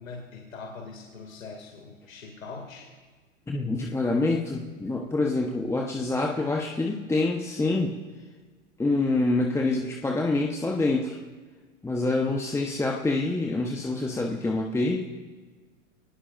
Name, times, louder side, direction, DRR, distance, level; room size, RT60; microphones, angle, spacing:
voice 1, 0.0-2.9, left 4 dB, 80° left, 1 dB, 2.6 m, -42 dB
voice 2, 3.5-8.0 8.8-11.2 11.8-15.1, left 2 dB, 5° left, 1 dB, 1.1 m, -26 dB
24.5 x 19.0 x 2.6 m, 1.4 s
hypercardioid pair, 105°, 40 cm